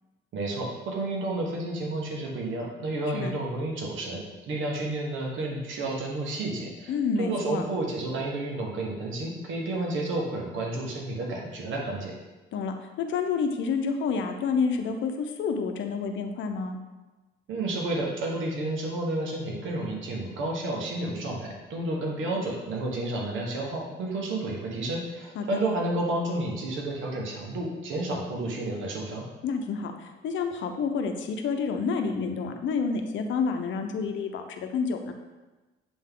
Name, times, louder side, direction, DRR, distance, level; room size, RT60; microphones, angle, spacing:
voice 1, 0.3-12.2 17.5-29.3, right 2 dB, 80° right, 0 dB, 1.4 m, -31 dB
voice 2, 6.9-7.6 12.5-16.8 25.4-25.5 29.4-35.1, left 5 dB, 70° left, 5 dB, 0.7 m, -29 dB
7.7 x 3.6 x 3.7 m, 1.2 s
cardioid pair, 90°, 20 cm